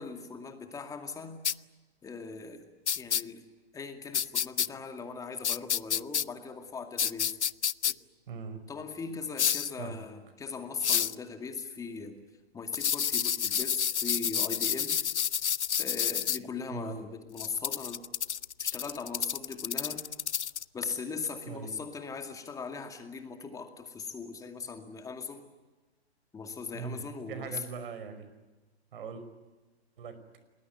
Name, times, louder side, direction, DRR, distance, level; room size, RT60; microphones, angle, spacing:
voice 1, 0.0-1.4 2.0-2.7 3.0-3.4 3.7-7.4 7.9-8.0 8.7-12.2 12.5-15.0 15.8-18.0 18.6-20.0 20.7-25.4 26.3-27.6, left 5 dB, 10° left, 6 dB, 2.3 m, -39 dB
sound 1, 1.4-1.5 2.9-3.2 4.1-4.7 5.4-6.2 7.0-7.9 9.4-9.7 10.8-11.1 12.7-16.4 17.4-20.6, left 8 dB, 85° left, 0.8 m, -29 dB
voice 2, 8.3-8.6 9.8-10.0 16.7-17.0 21.5-21.8 26.7-27.0 27.3-28.3 28.9-29.2 30.0-30.2, right 6 dB, 55° right, 11 dB, 5.3 m, -40 dB
28.0 x 20.0 x 9.4 m, 1.2 s
hypercardioid pair, 140°, 33 cm